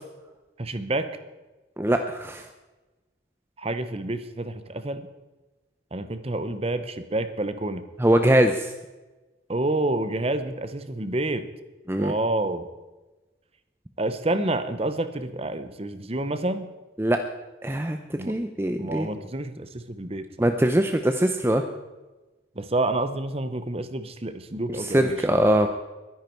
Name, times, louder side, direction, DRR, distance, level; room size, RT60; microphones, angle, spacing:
voice 1, 0.6-1.1 3.6-5.0 5.9-7.8 9.5-11.5 12.0-12.7 14.0-16.7 18.2-18.3 18.8-20.3 22.6-25.3, right 2 dB, 30° right, 11 dB, 0.9 m, -28 dB
voice 2, 1.8-2.4 8.0-8.7 11.9-12.1 17.0-17.2 17.6-19.1 20.4-21.6 24.8-25.7, right 1 dB, 10° right, 6 dB, 0.6 m, -22 dB
22.0 x 10.5 x 4.5 m, 1.1 s
head